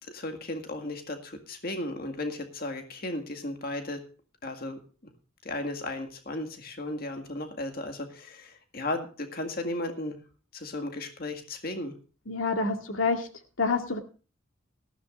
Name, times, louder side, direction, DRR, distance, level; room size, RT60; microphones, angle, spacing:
voice 1, 0.1-4.0 4.4-4.8 5.4-10.2 10.5-11.9, left 1 dB, 50° left, 5 dB, 1.9 m, -35 dB
voice 2, 12.3-13.3 13.6-14.0, left 4 dB, 85° left, 5 dB, 2.1 m, -27 dB
18.5 x 14.0 x 2.5 m, 0.37 s
head